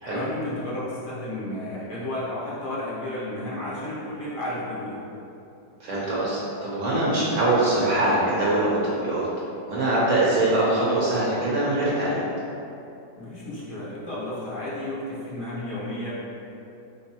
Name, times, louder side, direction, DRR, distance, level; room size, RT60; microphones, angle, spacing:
voice 1, 0.0-5.0 13.1-16.1, left 1 dB, 50° left, -9 dB, 1.2 m, -32 dB
voice 2, 5.8-9.3 9.7-12.2, right 2 dB, 60° right, -7 dB, 1.0 m, -23 dB
4.4 x 3.7 x 2.9 m, 2.8 s
omnidirectional pair, 1.8 m